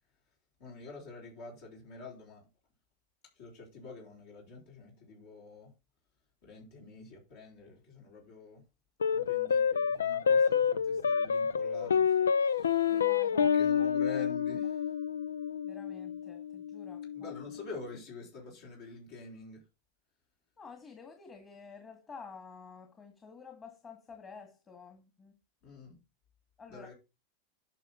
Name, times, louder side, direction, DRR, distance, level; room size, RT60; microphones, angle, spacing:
voice 1, 0.6-2.5 3.3-5.7 6.4-8.6 9.1-14.9 17.1-19.6 25.6-26.0 26.7-26.9, left 3 dB, 65° left, 4.3 m, -47 dB
sound 1, 9.0-17.6, left 7 dB, 85° left, 0.4 m, -29 dB
voice 2, 12.9-13.9 15.6-17.3 20.6-25.3 26.6-26.9, left 5 dB, 25° left, 2.1 m, -50 dB
11.5 x 5.5 x 4.1 m
hypercardioid pair, 95°, 0 cm